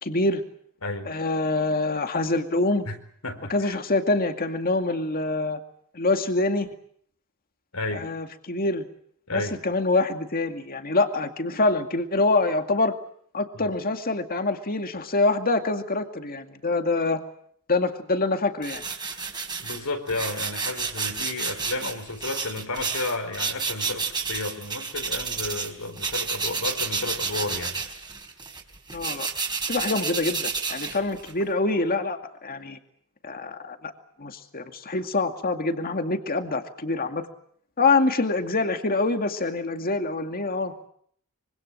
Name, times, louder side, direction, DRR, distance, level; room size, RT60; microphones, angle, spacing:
voice 1, 0.0-0.4 1.0-2.9 3.5-5.6 5.9-6.7 7.9-8.8 9.3-12.9 13.3-17.2 17.7-18.8 28.9-29.3 29.7-32.8 33.2-33.9 34.2-37.3 37.8-40.7, left 3 dB, 45° left, 6 dB, 2.3 m, -25 dB
voice 2, 0.8-1.1 2.9-3.0 3.2-3.8 7.7-8.1 9.3-9.6 13.5-13.7 19.6-27.8, left 2 dB, 80° left, 5 dB, 4.4 m, -32 dB
sound 1, 18.6-25.7 26.0-31.4, right 5 dB, 20° right, 4.2 m, -30 dB
25.5 x 24.5 x 7.6 m, 0.64 s
head